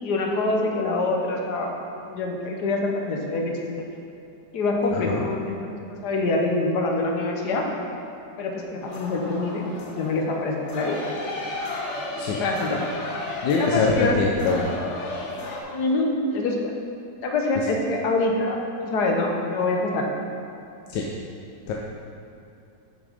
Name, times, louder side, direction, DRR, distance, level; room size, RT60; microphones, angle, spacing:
voice 1, 0.0-3.9 4.5-5.7 6.0-7.6 8.4-11.0 12.4-12.8 13.6-14.2 15.7-16.6 17.2-20.1, left 2 dB, 65° left, 1 dB, 1.5 m, -25 dB
voice 2, 4.9-5.2 12.2-12.4 13.4-14.7 20.9-21.1 21.7-21.8, left 4 dB, 85° left, -2 dB, 1.3 m, -23 dB
sound 1, 8.8-15.6, left 2 dB, 45° left, 1.1 m, -34 dB
6.7 x 6.3 x 5.1 m, 2.7 s
omnidirectional pair, 1.9 m